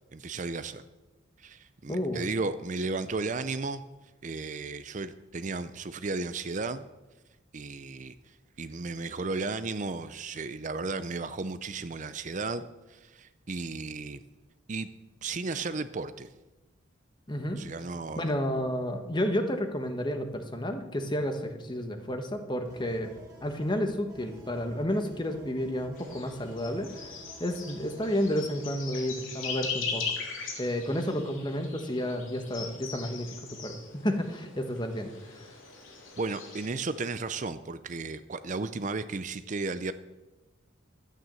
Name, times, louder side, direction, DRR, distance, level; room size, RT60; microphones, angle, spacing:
voice 1, 0.1-0.8 1.4-3.8 4.2-6.8 7.5-8.2 8.6-12.6 12.9-14.2 14.7-14.9 15.2-16.3 17.5-18.3 36.2-39.9, right 3 dB, 40° right, 12 dB, 0.5 m, -34 dB
voice 2, 1.9-2.3 17.3-17.6 18.2-23.1 23.4-27.1 27.4-30.1 30.6-35.1, equal, 20° left, 6 dB, 1.3 m, -31 dB
sound 1, 22.6-28.3, right 1 dB, 20° right, 3.0 m, -51 dB
sound 2, 25.9-36.7, left 5 dB, 80° left, 3.3 m, -40 dB
12.5 x 9.2 x 7.6 m, 1.1 s
head